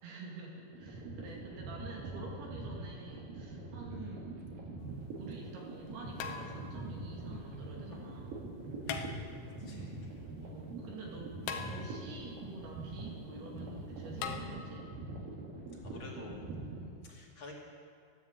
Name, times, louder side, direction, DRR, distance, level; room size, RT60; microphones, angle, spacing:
voice 1, 0.0-4.3 5.2-8.4 10.4-11.4 11.6-14.9, right 3 dB, 85° right, -2 dB, 4.5 m, -48 dB
sound 1, 0.7-16.8, right 2 dB, 65° right, 3.6 m, -43 dB
voice 2, 3.9-4.2 7.9-8.1 9.6-10.1 15.8-16.4 17.0-17.5, left 3 dB, 35° left, -3 dB, 3.0 m, -50 dB
sound 2, 4.8-4.9 6.2-6.9 8.8-9.6 11.5-12.2 14.2-14.4, left 7 dB, 80° left, 2.9 m, -41 dB
13.5 x 11.0 x 8.1 m, 2.2 s
omnidirectional pair, 4.4 m